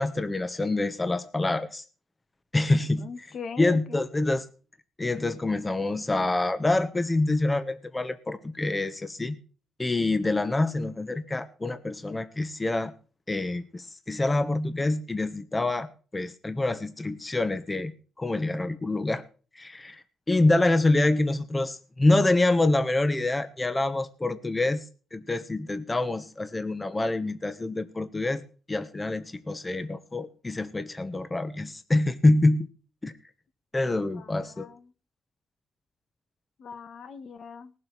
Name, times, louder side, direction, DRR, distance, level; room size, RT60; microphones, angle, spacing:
voice 1, 0.0-1.8 2.5-3.1 3.6-4.4 5.0-9.4 9.8-12.9 13.3-15.9 16.1-17.9 18.2-19.2 19.5-24.8 25.1-28.4 28.7-32.7 33.0-33.1 33.7-34.7, left 2 dB, 20° left, 12 dB, 1.2 m, -26 dB
voice 2, 2.8-4.0 34.1-34.9 36.6-37.7, left 5 dB, 60° left, 11 dB, 1.7 m, -41 dB
19.0 x 7.7 x 5.9 m, 0.39 s
cardioid pair, 90°, 0 cm